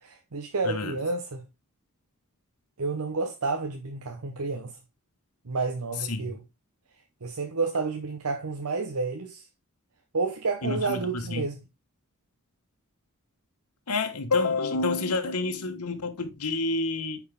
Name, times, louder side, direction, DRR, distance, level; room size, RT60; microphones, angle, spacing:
voice 1, 0.0-1.4 2.8-4.7 5.5-6.4 7.2-9.4 10.1-11.6, right 3 dB, 80° right, 0.9 m, -30 dB
voice 2, 0.6-1.0 6.0-6.4 10.6-11.4 13.9-17.2, left 3 dB, 90° left, 1.2 m, -28 dB
9.6 x 4.7 x 3.5 m
head